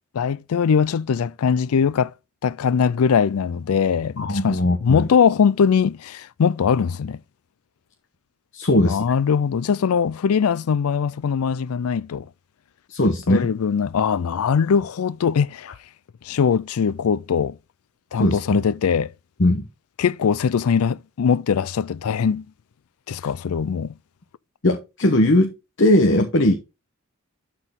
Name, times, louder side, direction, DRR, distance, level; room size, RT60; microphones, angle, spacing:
voice 1, 0.2-2.1 2.4-7.2 8.7-12.3 13.3-15.7 16.3-17.6 18.1-19.1 20.0-22.5 23.1-23.9, left 6 dB, 85° left, 0.4 m, -21 dB
voice 2, 4.2-5.1 8.5-9.0 12.9-13.5 18.1-18.6 19.4-19.7 23.2-23.3 24.6-25.5 25.8-26.5, left 1 dB, 55° left, 1.0 m, -19 dB
12.0 x 4.5 x 3.6 m
head